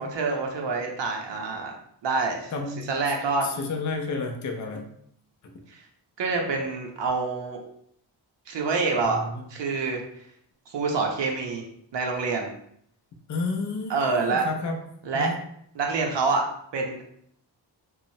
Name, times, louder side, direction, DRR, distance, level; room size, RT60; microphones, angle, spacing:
voice 1, 0.0-1.7 2.0-3.5 5.7-5.8 6.2-7.6 8.5-9.2 9.5-10.0 10.7-11.6 11.9-12.5 13.9-14.5 15.0-15.3 15.7-16.4 16.7-17.0, right 4 dB, 70° right, 1 dB, 0.6 m, -26 dB
voice 2, 2.5-2.9 3.6-4.9 9.1-9.3 13.3-14.7 15.1-15.3, left 3 dB, 40° left, 2 dB, 0.5 m, -30 dB
3.0 x 2.0 x 2.6 m, 0.68 s
wide cardioid pair, 125°, 46 cm